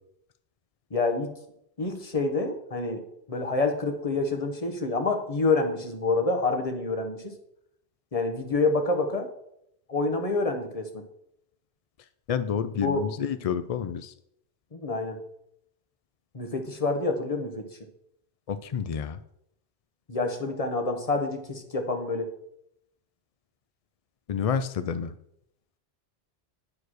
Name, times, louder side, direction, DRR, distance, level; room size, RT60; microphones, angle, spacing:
voice 1, 0.9-1.3 1.8-7.3 8.1-9.3 9.9-11.0 12.7-13.1 14.7-15.2 16.3-17.7 20.1-22.3, left 3 dB, 35° left, 5 dB, 1.1 m, -27 dB
voice 2, 12.3-14.1 18.5-19.2 24.3-25.1, left 7 dB, 65° left, 11 dB, 0.3 m, -29 dB
9.8 x 4.7 x 6.4 m, 0.78 s
omnidirectional pair, 1.1 m